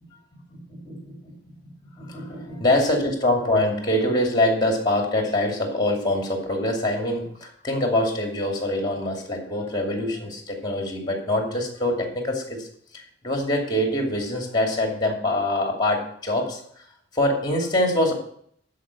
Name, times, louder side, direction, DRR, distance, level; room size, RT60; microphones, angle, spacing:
voice 1, 0.3-12.7 12.9-16.8 17.1-18.1, left 1 dB, 20° left, 2 dB, 2.6 m, -24 dB
12.5 x 5.3 x 8.4 m, 0.64 s
head